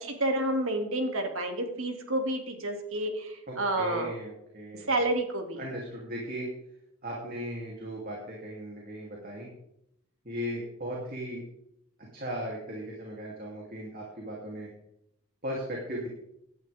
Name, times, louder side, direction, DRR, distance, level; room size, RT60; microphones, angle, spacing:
voice 1, 0.0-4.1 4.9-5.6, right 1 dB, 65° right, 3 dB, 2.6 m, -29 dB
voice 2, 3.5-5.0 5.6-6.5 7.0-9.5 10.2-11.4 12.1-14.7 15.4-16.1, equal, 40° right, -3 dB, 3.0 m, -37 dB
17.0 x 11.5 x 3.6 m, 0.77 s
head